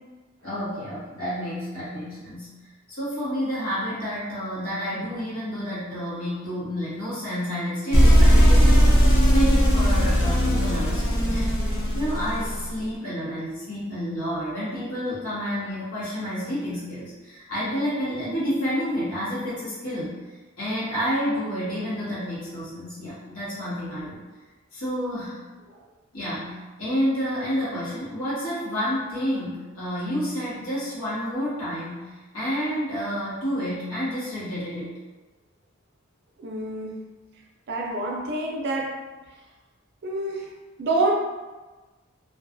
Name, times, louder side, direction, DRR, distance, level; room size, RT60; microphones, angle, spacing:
voice 1, 0.4-2.5 2.9-20.1 20.6-24.2 24.7-25.4 26.1-34.9, equal, 85° left, -10 dB, 1.1 m, -29 dB
sound 1, 7.9-12.7, equal, 60° left, 0.5 m, -18 dB
voice 2, 36.4-36.9 37.7-39.0 40.0-40.4 40.8-41.1, right 2 dB, 50° right, 0 dB, 0.4 m, -26 dB
2.4 x 2.2 x 2.5 m, 1.2 s
head